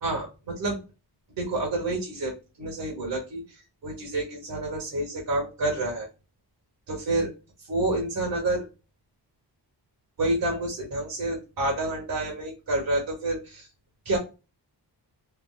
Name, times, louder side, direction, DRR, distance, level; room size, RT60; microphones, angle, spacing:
voice 1, 0.0-0.8 1.4-2.3 2.6-3.4 3.8-6.1 6.9-7.3 7.7-8.7 10.2-13.7 14.0-14.2, right 2 dB, 55° right, -1 dB, 1.1 m, -28 dB
3.3 x 2.5 x 2.2 m, 0.29 s
wide cardioid pair, 145°, 43 cm